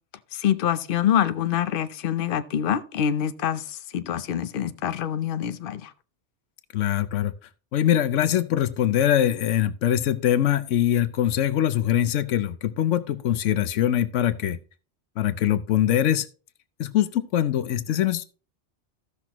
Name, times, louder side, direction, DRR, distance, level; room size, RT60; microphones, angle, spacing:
voice 1, 0.3-5.9, left 9 dB, 55° left, 0.8 m, -25 dB
voice 2, 6.7-7.3 7.7-14.6 15.2-16.3 16.8-18.2, left 11 dB, 85° left, 1.0 m, -23 dB
15.0 x 6.0 x 3.0 m
omnidirectional pair, 1.2 m